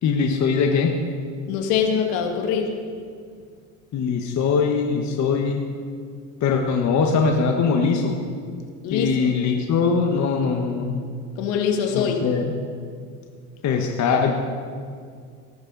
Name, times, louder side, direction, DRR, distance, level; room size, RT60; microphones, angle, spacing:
voice 1, 0.0-1.0 3.9-5.6 6.4-8.2 8.9-10.9 11.9-12.5 13.6-14.3, left 5 dB, 40° left, 3 dB, 1.4 m, -21 dB
voice 2, 1.5-2.7 8.8-9.3 11.4-12.2, left 7 dB, 60° left, 4 dB, 2.1 m, -23 dB
19.0 x 11.0 x 4.1 m, 2.1 s
hypercardioid pair, 95°, 44 cm